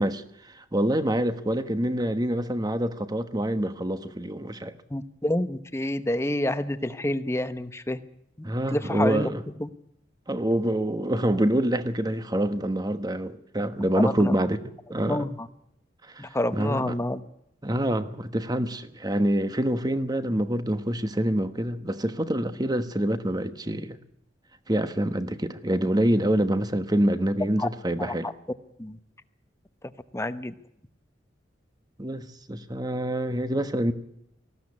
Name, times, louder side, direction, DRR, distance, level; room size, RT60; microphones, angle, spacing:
voice 1, 0.0-4.8 8.4-9.4 10.3-14.6 14.9-15.2 16.1-16.9 17.6-24.0 24.7-28.3 32.0-33.9, right 1 dB, 20° right, 1.2 m, -26 dB
voice 2, 4.9-8.0 8.7-9.3 9.6-9.7 14.0-14.4 15.0-15.5 16.2-17.2 27.6-27.7 28.0-28.3 28.8-29.0 30.1-30.5, left 1 dB, 15° left, 1.0 m, -28 dB
19.0 x 15.5 x 9.7 m
head